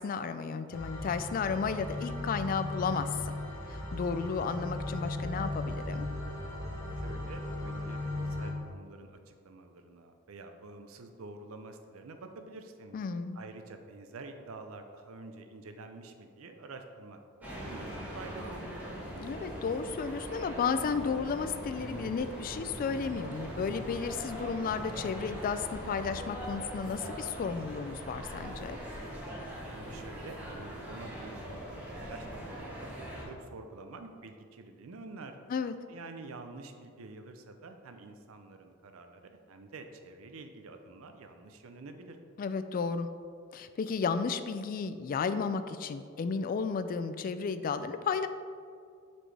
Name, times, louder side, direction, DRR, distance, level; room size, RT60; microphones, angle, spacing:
voice 1, 0.0-3.4 3.7-6.1 12.9-13.4 19.2-28.8 35.5-35.7 42.4-43.1 43.5-48.3, left 5 dB, 45° left, 10 dB, 0.3 m, -33 dB
sound 1, 0.7-8.5, left 2 dB, 70° left, 1.1 m, -37 dB
voice 2, 6.9-13.0 13.3-18.7 29.6-32.9 33.2-35.4 35.9-42.2, right 3 dB, 90° right, 6 dB, 0.6 m, -48 dB
sound 2, 17.4-33.2, equal, 10° right, 1.4 m, -41 dB
7.5 x 4.3 x 3.3 m, 2.2 s
head